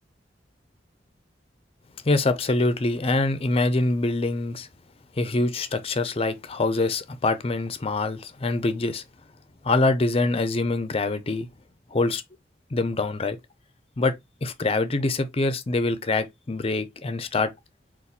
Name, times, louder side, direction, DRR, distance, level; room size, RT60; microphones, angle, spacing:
voice 1, 2.0-4.7 5.2-9.0 9.6-11.5 11.9-12.2 12.7-13.4 14.0-14.1 14.4-17.5, left 2 dB, 35° left, 0.6 m, -24 dB
4.1 x 2.6 x 4.1 m
head